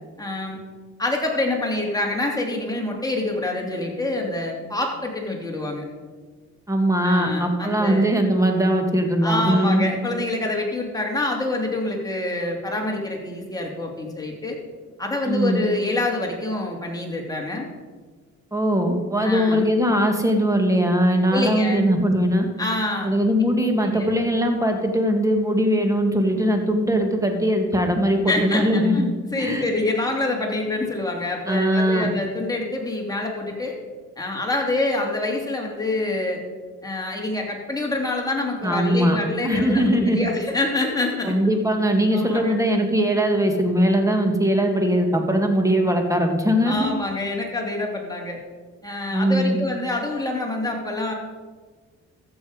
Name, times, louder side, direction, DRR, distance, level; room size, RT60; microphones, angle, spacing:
voice 1, 0.2-0.6 1.0-5.8 7.0-8.1 9.2-14.6 15.0-17.7 19.2-19.6 21.3-21.8 22.6-23.1 23.8-24.1 28.3-33.8 34.2-36.4 36.8-41.3 42.1-42.5 46.6-48.4 48.8-51.1, left 2 dB, 10° left, -1 dB, 2.8 m, -26 dB
voice 2, 6.7-9.8 15.3-15.6 18.5-22.5 23.0-29.1 29.3-29.6 31.5-32.1 38.6-39.2 39.4-40.3 41.2-46.9 49.1-49.6, equal, 10° right, 4 dB, 2.0 m, -20 dB
14.5 x 7.1 x 5.0 m, 1.4 s
cardioid pair, 90°, 30 cm